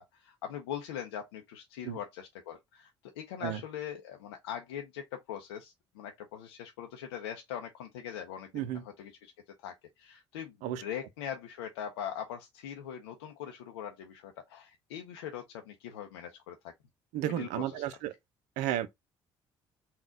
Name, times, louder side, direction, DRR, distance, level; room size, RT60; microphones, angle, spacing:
voice 1, 0.0-9.3 9.6-16.7 17.2-18.0, left 9 dB, 80° left, 0.5 m, -42 dB
voice 2, 17.1-18.1 18.6-18.9, right 12 dB, 70° right, 0.6 m, -33 dB
3.9 x 2.3 x 3.7 m
hypercardioid pair, 50°, 13 cm